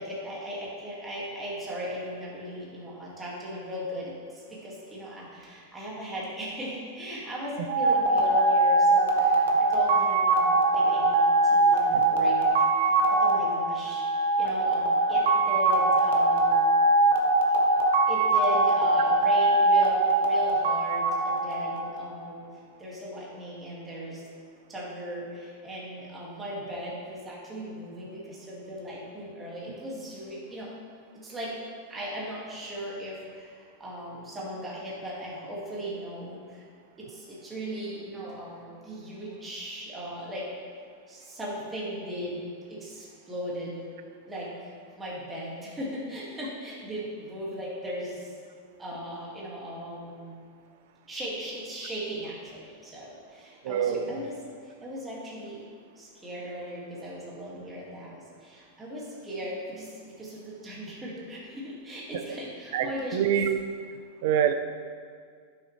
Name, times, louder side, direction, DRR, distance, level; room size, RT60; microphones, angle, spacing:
voice 1, 0.0-14.1 14.4-16.7 18.1-22.5 22.8-24.3 24.7-30.7 31.1-31.6 31.9-36.6 37.0-40.5 41.1-43.8 44.3-48.3 48.8-50.4 51.1-55.7 56.0-63.3, equal, 15° right, -6 dB, 2.0 m, -37 dB
sound 1, 7.7-22.1, right 2 dB, 80° right, 1.0 m, -22 dB
voice 2, 53.6-54.0 62.7-63.6 64.2-64.5, right 9 dB, 65° right, 9 dB, 0.6 m, -25 dB
11.0 x 6.4 x 3.2 m, 2.1 s
supercardioid pair, 140°, 0 cm